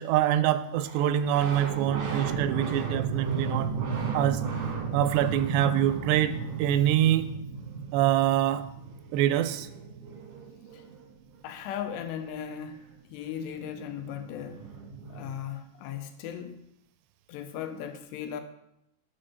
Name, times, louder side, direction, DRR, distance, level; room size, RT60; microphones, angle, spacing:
voice 1, 0.0-3.7 4.1-4.4 4.9-7.3 7.9-8.6 9.1-9.7, right 11 dB, 85° right, 12 dB, 2.7 m, -25 dB
sound 1, 0.8-11.2 13.3-13.4 13.6-15.4, right 5 dB, 60° right, 1.5 m, -34 dB
voice 2, 11.4-12.8 13.1-14.6 15.1-16.6 17.3-18.4, left 9 dB, 90° left, 7 dB, 2.9 m, -37 dB
7.5 x 4.3 x 6.4 m, 0.81 s
omnidirectional pair, 4.9 m